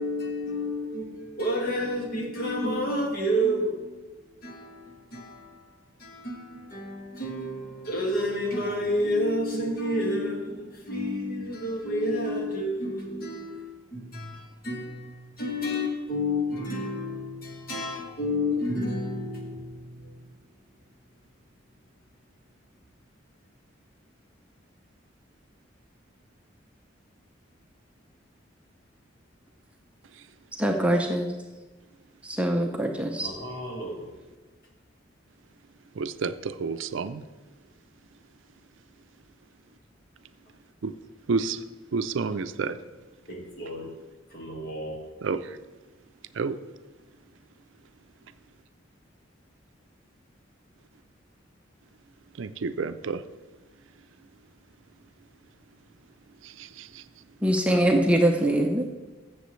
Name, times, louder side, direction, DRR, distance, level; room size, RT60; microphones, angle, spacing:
voice 1, 0.0-5.7 6.0-20.3 33.0-34.1 43.3-43.9 44.3-45.0, equal, 50° left, 0 dB, 1.8 m, -30 dB
voice 2, 30.6-31.3 32.2-33.3 57.4-58.9, right 1 dB, 5° right, 2 dB, 0.6 m, -23 dB
voice 3, 36.0-37.2 40.8-40.9 41.3-41.6 41.9-42.8 45.2-45.6 46.3-46.6 52.4-53.2 56.4-57.0, right 4 dB, 75° right, 12 dB, 0.5 m, -30 dB
14.5 x 6.9 x 3.1 m, 1.2 s
head